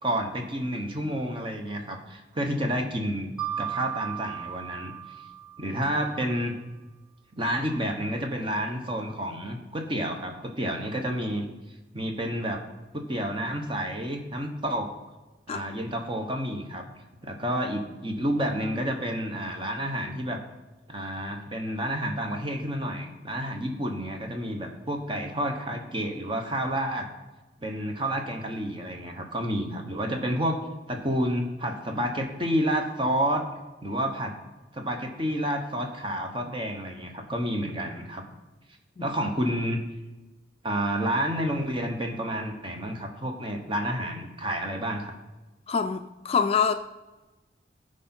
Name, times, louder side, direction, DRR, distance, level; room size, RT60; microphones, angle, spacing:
voice 1, 0.0-4.9 5.6-6.5 7.3-11.4 11.9-12.6 12.9-14.9 15.5-16.8 17.2-20.4 20.9-27.1 27.6-30.6 30.9-33.5 33.8-34.4 34.7-38.2 39.0-39.8 40.6-45.1, equal, 30° right, 3 dB, 1.1 m, -30 dB
Mallet percussion, 3.4-6.2, right 10 dB, 10° right, 0.8 m, -36 dB
voice 2, 45.7-46.7, left 6 dB, 35° left, 8 dB, 0.3 m, -25 dB
14.5 x 5.0 x 4.4 m, 1.1 s
head